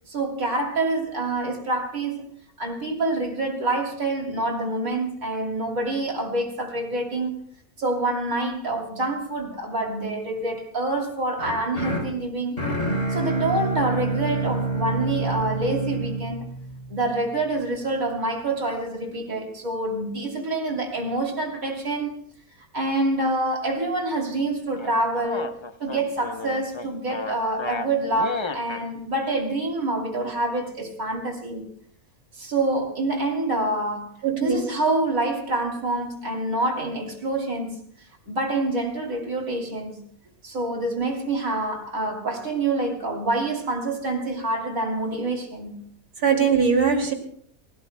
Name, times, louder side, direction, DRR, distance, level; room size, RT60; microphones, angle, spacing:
voice 1, 0.1-7.3 7.8-12.6 13.1-16.5 16.9-22.2 22.7-25.5 25.8-31.7 32.4-37.8 38.3-40.0 40.4-45.8, right 2 dB, 65° right, 3.3 m, -26 dB
sound 1, 11.4-17.5, right 2 dB, 50° left, 3.4 m, -28 dB
sound 2, 24.8-28.9, left 4 dB, 35° left, 0.5 m, -33 dB
voice 2, 34.2-34.6 46.2-47.1, right 6 dB, 85° right, 3.1 m, -20 dB
29.0 x 17.5 x 2.2 m
omnidirectional pair, 1.5 m